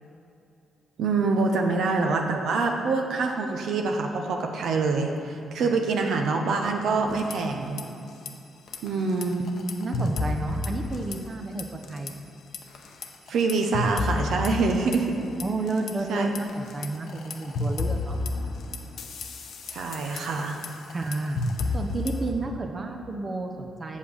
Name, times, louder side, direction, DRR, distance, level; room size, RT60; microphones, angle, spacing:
voice 1, 1.0-7.8 8.8-9.4 13.3-15.3 16.1-16.3 19.7-20.6, right 4 dB, 75° right, 3 dB, 0.8 m, -25 dB
sound 1, 7.1-7.8 8.1-8.3 8.7-11.3 11.6-12.1 12.5-15.9 16.3-22.3, left 2 dB, 70° left, 0.8 m, -31 dB
voice 2, 9.6-12.1 15.4-18.2 20.9-21.4 21.7-24.0, right 2 dB, 40° right, 3 dB, 0.7 m, -31 dB
7.3 x 5.7 x 6.3 m, 2.7 s
cardioid pair, 75°, 0 cm